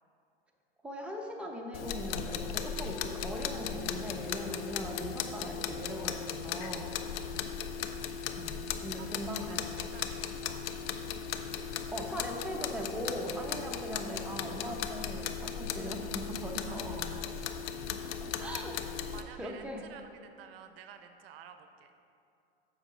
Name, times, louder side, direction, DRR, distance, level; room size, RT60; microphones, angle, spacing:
voice 1, 0.8-6.9 8.4-9.8 11.9-17.0 18.0-18.7 19.1-19.8, equal, 5° right, -1 dB, 0.9 m, -40 dB
sound 1, 1.7-19.2, left 8 dB, 70° left, 0.6 m, -37 dB
voice 2, 6.7-7.7 9.0-10.8 16.6-17.3 18.4-18.6 19.1-21.9, right 8 dB, 70° right, 8 dB, 0.6 m, -53 dB
7.2 x 4.9 x 5.0 m, 2.6 s
hypercardioid pair, 105°, 31 cm